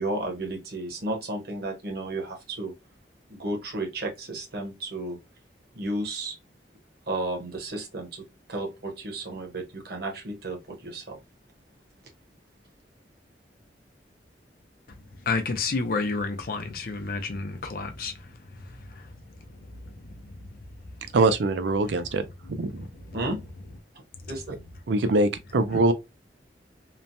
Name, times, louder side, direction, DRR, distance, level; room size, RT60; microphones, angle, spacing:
voice 1, 0.0-2.7 3.3-5.2 5.7-6.3 7.1-8.2 8.5-11.2 23.1-23.4 24.3-24.5, right 2 dB, 60° right, 0.9 m, -33 dB
voice 2, 15.3-19.1 19.6-20.4 22.4-23.2 24.2-24.3, left 4 dB, 55° left, 0.5 m, -32 dB
voice 3, 21.1-22.2 22.6-22.9 24.9-25.9, right 2 dB, 85° right, 0.5 m, -23 dB
3.0 x 2.1 x 2.6 m
head